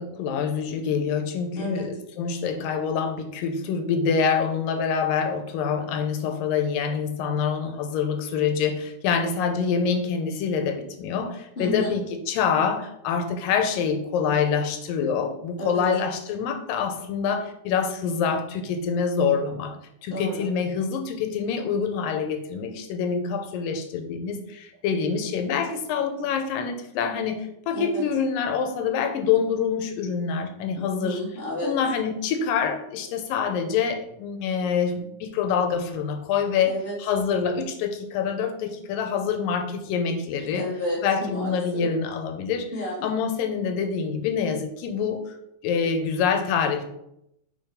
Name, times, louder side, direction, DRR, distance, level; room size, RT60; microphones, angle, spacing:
voice 1, 0.0-19.7 20.0-31.2 31.6-36.7 37.0-40.7 41.0-42.7 43.0-45.4 45.6-46.9, left 6 dB, 90° left, 6 dB, 2.4 m, -26 dB
voice 2, 11.5-12.0 15.6-15.8 20.1-20.4 27.7-28.0 30.7-31.7 36.6-36.9 40.5-41.9 42.7-43.1, left 1 dB, 20° left, -4 dB, 1.7 m, -31 dB
5.0 x 4.7 x 5.0 m, 0.79 s
omnidirectional pair, 3.9 m